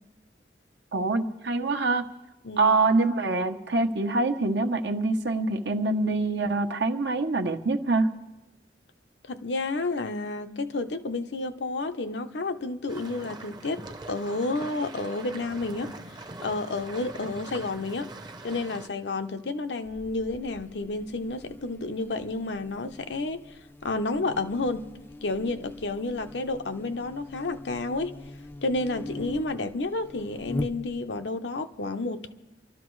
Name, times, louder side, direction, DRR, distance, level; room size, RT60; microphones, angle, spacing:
voice 1, 0.9-2.1 2.6-8.1, right 3 dB, 75° right, 1.0 m, -25 dB
voice 2, 2.4-2.8 9.3-15.9 16.4-18.1 18.4-23.6 23.8-24.9 25.2-28.2 28.6-32.3, left 2 dB, 80° left, 0.8 m, -30 dB
sound 1, 12.9-18.9, right 2 dB, 25° right, 0.7 m, -42 dB
Buzz, 19.9-31.3, left 2 dB, 10° left, 0.4 m, -42 dB
28.5 x 12.5 x 3.2 m
head